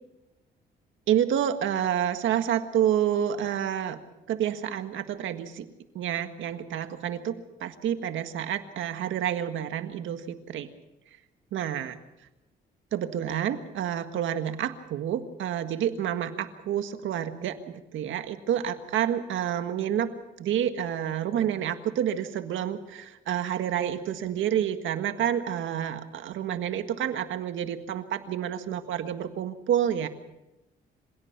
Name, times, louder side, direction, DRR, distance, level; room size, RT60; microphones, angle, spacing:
voice 1, 1.1-4.0 4.3-5.7 5.9-7.3 7.6-10.7 11.5-12.0 12.9-20.1 20.4-30.1, right 10 dB, 75° right, 8 dB, 1.7 m, -29 dB
26.5 x 17.0 x 6.0 m, 0.94 s
cardioid pair, 90°, 20 cm